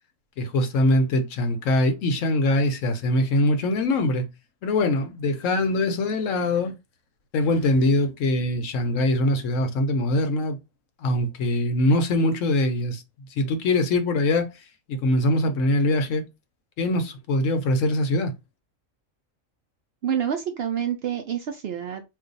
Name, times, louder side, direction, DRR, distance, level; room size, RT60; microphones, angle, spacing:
voice 1, 0.4-4.3 4.6-6.7 7.3-10.6 11.0-13.0 13.3-14.6 14.9-16.2 16.8-18.3, left 1 dB, 70° left, 1.0 m, -23 dB
voice 2, 20.0-22.0, right 8 dB, 65° right, 0.6 m, -27 dB
2.5 x 2.2 x 3.8 m
omnidirectional pair, 1.4 m